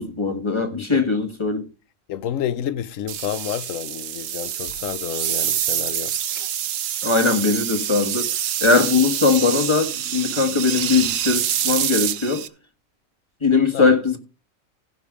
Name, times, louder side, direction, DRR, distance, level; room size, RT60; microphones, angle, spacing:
voice 1, 0.0-1.6 7.0-8.3 8.6-12.4 13.4-14.2, left 4 dB, 20° left, 1.5 m, -20 dB
voice 2, 0.7-1.1 2.1-6.5 13.7-13.9, left 10 dB, 80° left, 1.1 m, -30 dB
sound 1, 3.1-12.5, right 10 dB, 80° right, 1.1 m, -26 dB
16.0 x 5.3 x 4.9 m
omnidirectional pair, 1.4 m